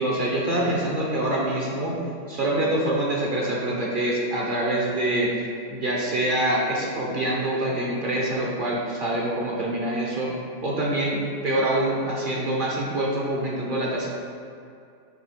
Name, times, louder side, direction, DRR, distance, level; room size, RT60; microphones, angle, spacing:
voice 1, 0.0-1.9 2.3-5.4 5.7-10.3 10.6-14.1, right 1 dB, 40° right, -4 dB, 0.8 m, -25 dB
8.0 x 3.1 x 5.0 m, 2.4 s
omnidirectional pair, 1.9 m